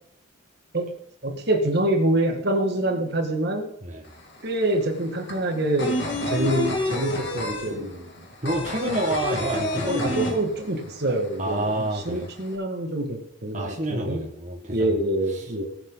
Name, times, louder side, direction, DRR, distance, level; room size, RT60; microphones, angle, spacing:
voice 1, 1.2-3.7 4.4-6.0 6.3-8.3 10.0-14.3 14.7-15.7, right 1 dB, 50° right, 4 dB, 1.9 m, -26 dB
sound 1, 4.0-4.1 4.4-11.0 11.2-11.3 11.7-12.5, left 1 dB, 55° left, 2.5 m, -28 dB
voice 2, 8.4-10.4 11.4-12.3 13.5-15.0 15.3-15.4, right 1 dB, 35° right, -2 dB, 1.6 m, -28 dB
18.5 x 7.2 x 4.0 m, 0.73 s
head